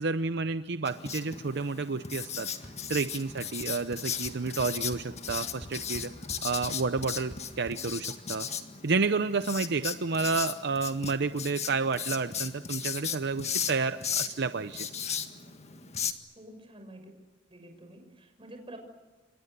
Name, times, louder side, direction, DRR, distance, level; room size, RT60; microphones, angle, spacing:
voice 1, 0.0-2.5 2.9-6.1 6.4-8.5 8.8-14.9, right 4 dB, 60° right, 11 dB, 0.7 m, -30 dB
Writing, 0.9-16.1, left 7 dB, 35° left, 1.7 m, -36 dB
sound 1, 2.6-3.0 3.3-3.7 3.9-4.0 4.2-7.8, equal, 10° right, 3.0 m, -45 dB
voice 2, 16.3-17.1 17.5-18.8, right 1 dB, 30° right, 5 dB, 6.7 m, -49 dB
29.5 x 25.5 x 6.8 m, 1.3 s
head